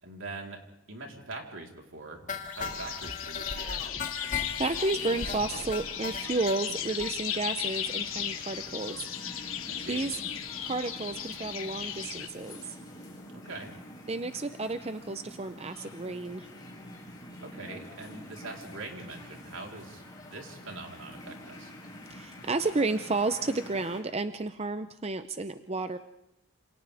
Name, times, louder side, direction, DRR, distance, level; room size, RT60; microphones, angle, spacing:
voice 1, 0.0-0.6 0.9-2.2 2.5-3.8 9.7-10.1 13.3-13.7 17.4-21.7, right 3 dB, 75° right, 1 dB, 4.0 m, -43 dB
sound 1, 2.3-6.6 7.0-7.1 7.4-7.5 7.8-7.9 8.2-8.3, left 5 dB, 40° left, 2.1 m, -37 dB
sound 2, 2.6-12.3, left 9 dB, 90° left, 2.5 m, -36 dB
voice 2, 4.3-9.6 9.9-10.2 10.6-12.8 14.1-16.5 22.1-26.0, right 3 dB, 30° right, 10 dB, 0.7 m, -32 dB
sound 3, 4.9-24.0, equal, 20° left, 4.4 m, -47 dB
28.5 x 28.0 x 3.5 m, 0.87 s
head